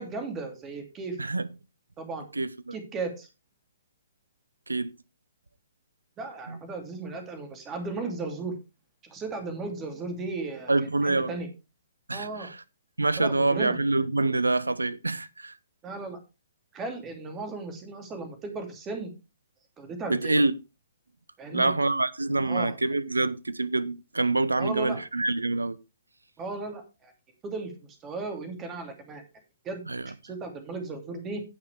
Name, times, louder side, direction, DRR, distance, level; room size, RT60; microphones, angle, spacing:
voice 1, 0.0-1.2 2.0-2.3 2.7-3.3 6.2-8.6 9.0-11.5 12.1-12.5 13.2-13.8 15.8-16.2 16.7-19.1 19.8-20.4 21.4-21.7 22.4-22.8 24.6-25.0 26.4-27.1 27.4-27.7 28.0-29.2 29.6-29.8 30.2-31.4, right 3 dB, 20° right, 2.8 m, -35 dB
voice 2, 2.3-2.7 4.7-4.9 6.5-6.6 10.7-11.4 12.1-12.6 13.0-15.5 20.1-20.5 21.5-25.8 29.9-30.1, right 2 dB, 75° right, 0.8 m, -26 dB
17.0 x 5.7 x 3.4 m
figure-of-eight pair, 125°, 0 cm